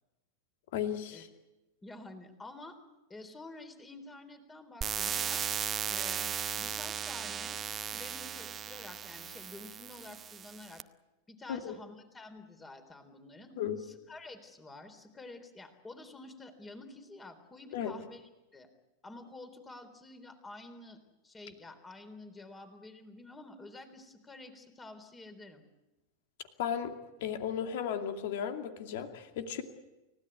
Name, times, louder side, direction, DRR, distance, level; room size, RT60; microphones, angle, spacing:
voice 1, 0.7-1.3 11.5-11.8 13.6-13.8 17.7-17.9 26.6-26.9 27.2-29.6, left 8 dB, 50° left, 6 dB, 2.5 m, -35 dB
voice 2, 1.8-2.8 3.1-5.4 5.9-7.6 7.9-10.8 11.3-18.7 19.0-21.0 21.2-25.6, left 2 dB, 15° left, 8 dB, 3.8 m, -49 dB
sound 1, 4.8-10.8, right 8 dB, 25° right, 0.8 m, -36 dB
30.0 x 16.5 x 8.3 m, 1.0 s
figure-of-eight pair, 90°, 0 cm